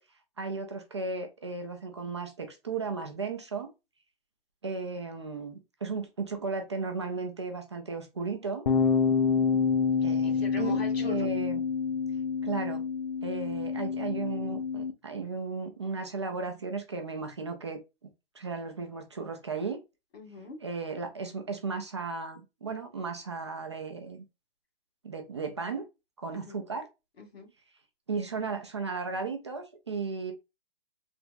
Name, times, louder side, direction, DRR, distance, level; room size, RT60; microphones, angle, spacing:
voice 1, 0.4-3.7 4.6-8.6 10.0-11.6 12.4-12.8 13.2-17.8 18.3-19.8 20.6-24.2 25.0-25.8 26.2-26.9 28.1-30.3, right 4 dB, 30° right, 0.4 m, -35 dB
sound 1, 8.7-14.9, left 5 dB, 50° left, 0.5 m, -27 dB
voice 2, 9.4-9.8 10.2-11.3 20.1-20.6 26.3-26.6 27.2-27.5, left 3 dB, 85° left, 1.8 m, -42 dB
3.4 x 2.8 x 2.5 m
hypercardioid pair, 170°, 30 cm